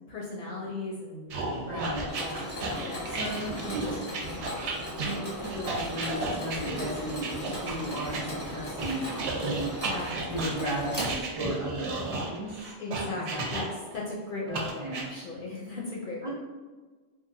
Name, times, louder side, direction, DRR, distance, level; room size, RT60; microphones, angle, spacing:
voice 1, 0.1-2.4 2.8-3.1 9.9-10.4 10.7-10.8 12.8-16.3, left 2 dB, 60° left, -4 dB, 0.6 m, -37 dB
sound 1, 1.3-8.2 8.8-14.0 14.5-15.0, right 3 dB, 90° right, 0.9 m, -33 dB
voice 2, 1.7-2.1 3.1-4.0 5.0-9.7 10.3-12.7 13.2-13.4 14.5-15.1 16.2-16.3, right 1 dB, 35° right, -8 dB, 0.5 m, -35 dB
Mechanisms, 2.1-11.6, left 1 dB, 15° left, 0.6 m, -37 dB
2.9 x 2.2 x 2.5 m, 1.3 s
omnidirectional pair, 1.1 m